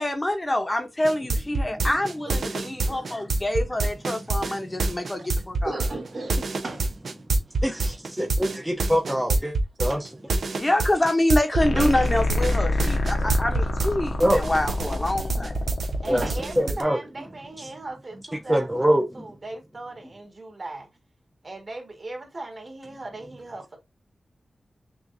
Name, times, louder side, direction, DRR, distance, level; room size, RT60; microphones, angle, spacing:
voice 1, 0.0-5.7 10.5-15.6, left 1 dB, 20° left, 0.8 m, -26 dB
sound 1, 1.0-13.9 14.2-16.8, right 3 dB, 75° right, 0.6 m, -26 dB
voice 2, 2.9-3.2 4.3-4.4 5.2-5.3 5.6-8.0 9.1-9.2 9.9-10.0 11.7-12.0 13.0-13.3 13.9-14.0 15.9-16.4, right 2 dB, 60° right, 1.3 m, -38 dB
voice 3, 7.6-9.5 9.8-10.0 14.2-14.4 16.1-16.2 16.6-17.0 18.5-19.3, equal, 5° right, 0.7 m, -23 dB
sound 2, 11.6-16.6, left 1 dB, 70° left, 1.0 m, -26 dB
voice 4, 16.0-20.9 21.4-23.8, right 2 dB, 45° right, 1.7 m, -38 dB
5.9 x 2.5 x 2.6 m
wide cardioid pair, 100°, 0 cm